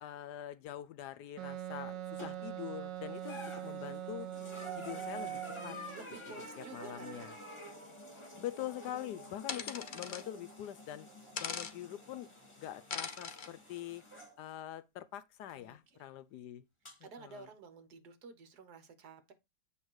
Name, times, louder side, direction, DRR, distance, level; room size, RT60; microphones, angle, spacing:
voice 1, 0.0-4.3 4.8-5.8 6.6-7.3 8.4-11.1 11.4-12.3 12.6-14.0 14.4-16.6 17.2-17.4, left 12 dB, 75° left, 1.1 m, -44 dB
Wind instrument woodwind instrument, 1.4-6.0, right 11 dB, 80° right, 1.3 m, -43 dB
sound 1, 2.2-2.6 3.1-14.3 15.5-15.6 16.8-16.9, right 2 dB, 15° left, 1.8 m, -48 dB
voice 2, 5.9-7.3 8.8-9.2 15.5-16.1 17.0-19.3, right 5 dB, 65° right, 1.6 m, -52 dB
sound 2, 9.5-10.2 11.4-11.7 12.9-13.5, left 5 dB, 50° left, 0.6 m, -40 dB
8.2 x 3.3 x 4.6 m
omnidirectional pair, 1.9 m